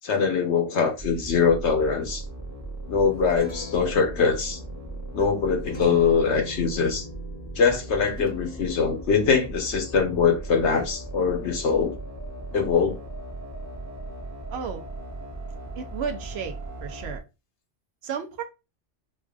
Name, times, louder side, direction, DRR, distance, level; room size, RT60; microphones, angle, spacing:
voice 1, 0.0-2.2 2.9-4.6 5.1-7.1 7.6-11.9 12.5-13.0, left 5 dB, 75° left, 1.1 m, -23 dB
sound 1, 1.0-17.2, right 2 dB, 15° right, 0.9 m, -38 dB
Guitar, 2.8-12.6, left 1 dB, 45° left, 0.9 m, -44 dB
voice 2, 14.5-14.8 15.8-16.5 16.8-17.2 18.0-18.4, right 6 dB, 70° right, 0.8 m, -32 dB
5.3 x 2.4 x 2.3 m
omnidirectional pair, 1.2 m